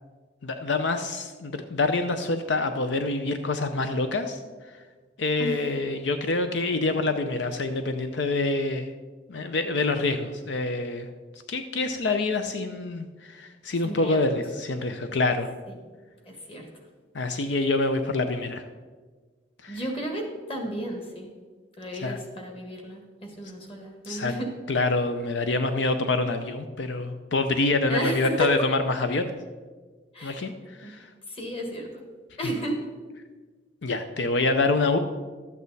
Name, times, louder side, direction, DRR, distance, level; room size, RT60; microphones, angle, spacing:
voice 1, 0.4-4.4 5.2-8.9 9.3-11.1 11.5-15.5 17.1-18.6 19.6-19.8 22.0-22.2 24.1-24.3 24.7-29.3 30.2-30.5 30.8-31.1 33.8-35.0, left 3 dB, 80° left, 8 dB, 0.6 m, -26 dB
voice 2, 13.8-14.2 16.2-16.7 19.7-21.3 21.8-24.5 27.9-28.5 30.1-30.4 30.8-30.9 31.3-32.0 32.4-32.8, right 1 dB, 30° left, 2 dB, 1.7 m, -33 dB
12.0 x 8.3 x 4.1 m, 1.4 s
head